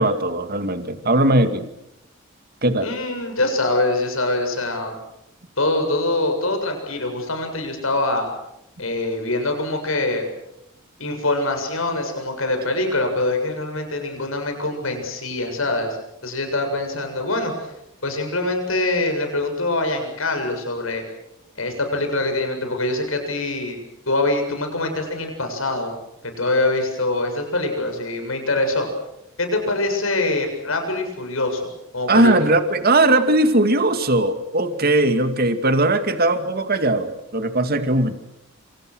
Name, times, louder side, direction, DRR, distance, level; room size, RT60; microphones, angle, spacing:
voice 1, 0.0-1.7 2.6-2.9 32.1-38.1, right 2 dB, 50° right, 8 dB, 2.4 m, -19 dB
voice 2, 2.8-5.0 5.6-8.3 8.8-10.3 11.0-16.0 16.2-17.5 18.0-21.0 21.6-23.8 24.1-25.9 26.2-28.9 29.4-31.6 31.9-32.5, left 2 dB, 90° left, 5 dB, 7.6 m, -24 dB
28.5 x 27.5 x 6.4 m, 0.83 s
head